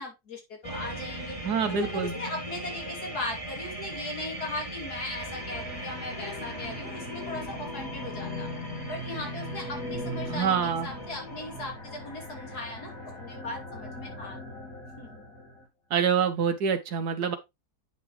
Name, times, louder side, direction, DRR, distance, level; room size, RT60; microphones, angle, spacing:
voice 1, 0.0-1.4 1.7-8.5 8.9-14.4 15.0-15.2, left 2 dB, 80° left, 3.1 m, -38 dB
sound 1, 0.6-11.7, right 1 dB, 20° right, 3.2 m, -39 dB
voice 2, 1.4-2.2 10.3-10.9 15.9-17.4, right 7 dB, 85° right, 1.6 m, -26 dB
sound 2, 5.1-15.6, left 1 dB, 60° left, 3.6 m, -39 dB
9.0 x 5.9 x 3.1 m
omnidirectional pair, 1.7 m